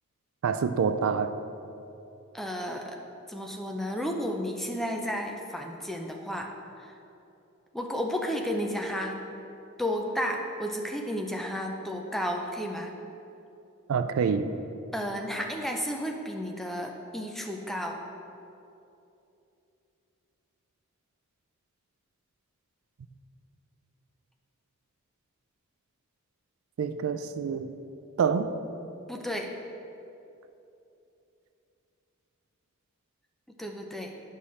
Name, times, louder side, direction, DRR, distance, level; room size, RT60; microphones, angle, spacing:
voice 1, 0.4-1.3 13.9-14.5 26.8-27.7 28.2-28.5, right 6 dB, 70° right, 10 dB, 0.3 m, -26 dB
voice 2, 2.3-3.0 3.3-6.5 6.8-6.9 7.7-9.2 9.8-12.9 14.9-18.0 29.1-29.5 33.6-34.1, equal, ahead, 2 dB, 0.4 m, -32 dB
10.0 x 5.5 x 3.2 m, 2.8 s
head